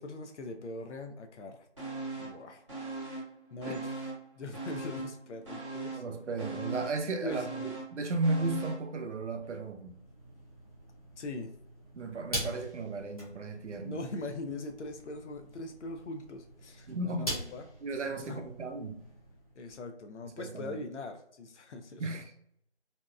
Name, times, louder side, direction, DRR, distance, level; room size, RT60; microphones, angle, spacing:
voice 1, 0.0-1.9 2.2-2.6 3.1-3.2 3.5-4.0 4.3-6.0 7.2-7.4 11.2-11.5 13.8-17.7 18.1-18.5 19.6-22.0, left 2 dB, 80° left, 5 dB, 0.5 m, -41 dB
sound 1, 1.8-2.4 2.7-4.2 4.5-8.9 9.2-9.3, right 3 dB, 25° right, 1.1 m, -40 dB
voice 2, 6.0-10.0 11.9-14.0 16.9-17.3 17.8-19.0 20.2-20.8 22.0-22.3, right 2 dB, 85° right, 5 dB, 0.6 m, -35 dB
sound 2, 9.4-19.8, equal, 30° left, 0.8 m, -44 dB
2.8 x 2.1 x 2.2 m, 0.69 s
figure-of-eight pair, 170°, 34 cm